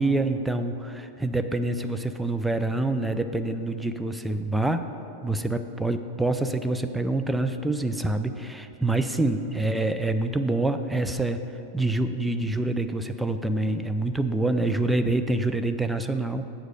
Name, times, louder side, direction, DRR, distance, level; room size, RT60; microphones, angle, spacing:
voice 1, 0.0-4.9 5.2-11.4 11.7-16.5, right 2 dB, 5° right, 7 dB, 0.3 m, -26 dB
7.4 x 4.8 x 6.5 m, 2.7 s
figure-of-eight pair, 90°, 0 cm